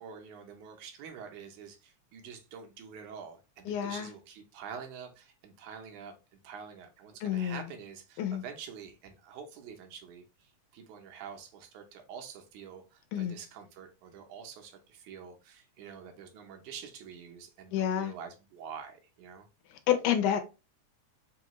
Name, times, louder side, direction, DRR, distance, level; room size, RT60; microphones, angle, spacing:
voice 1, 0.0-19.5, right 7 dB, 80° right, 2.2 m, -47 dB
voice 2, 3.7-4.1 7.2-7.7 8.2-8.4 13.1-13.4 17.7-18.1 19.9-20.4, left 10 dB, 85° left, 2.2 m, -29 dB
5.4 x 2.4 x 3.0 m
omnidirectional pair, 3.5 m